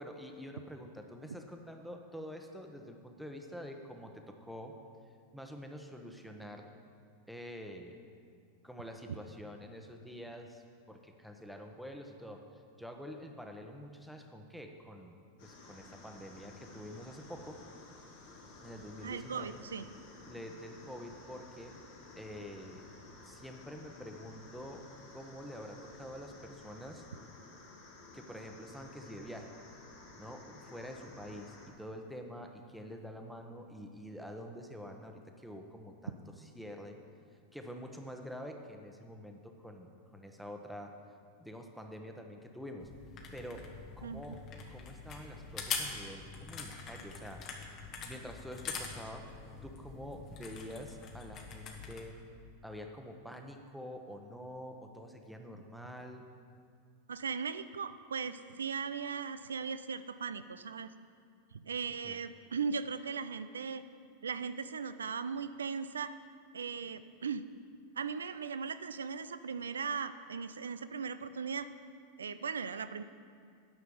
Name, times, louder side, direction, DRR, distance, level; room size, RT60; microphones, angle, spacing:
voice 1, 0.0-4.8 5.3-6.7 7.3-8.0 8.6-12.4 12.8-17.6 18.6-19.6 20.2-21.8 22.2-22.8 23.2-24.8 25.1-27.0 28.1-29.5 30.2-36.2 36.5-37.0 37.5-40.9 41.4-42.9 43.3-43.7 44.0-44.4 44.7-47.4 48.0-49.3 49.6-52.2 52.6-56.3 62.0-62.2, equal, ahead, 3 dB, 1.0 m, -47 dB
sound 1, 15.4-31.7, left 3 dB, 60° left, 2.0 m, -54 dB
voice 2, 19.0-19.9 44.0-44.2 57.1-60.9 61.5-63.8 64.2-66.1 66.5-67.4 68.0-71.7 72.2-73.0, right 6 dB, 85° right, 13 dB, 0.4 m, -38 dB
sound 2, 42.8-52.0, left 5 dB, 45° left, 1.3 m, -44 dB
9.6 x 5.8 x 6.9 m, 2.2 s
hypercardioid pair, 95°, 0 cm